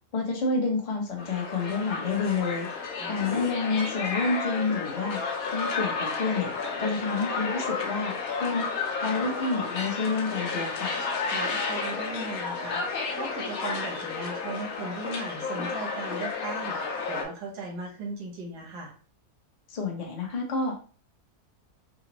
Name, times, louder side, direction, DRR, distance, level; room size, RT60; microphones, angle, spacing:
voice 1, 0.1-2.7 3.1-5.2 5.5-6.5 6.8-8.7 9.0-11.0 19.7-20.8, left 4 dB, 30° left, 0 dB, 0.7 m, -29 dB
sound 1, 1.2-17.2, left 4 dB, 65° left, 1.1 m, -32 dB
voice 2, 3.0-3.4 11.3-12.8 13.2-16.8 17.1-18.9, right 3 dB, 85° right, -1 dB, 1.5 m, -37 dB
3.9 x 2.1 x 2.9 m, 0.40 s
omnidirectional pair, 1.7 m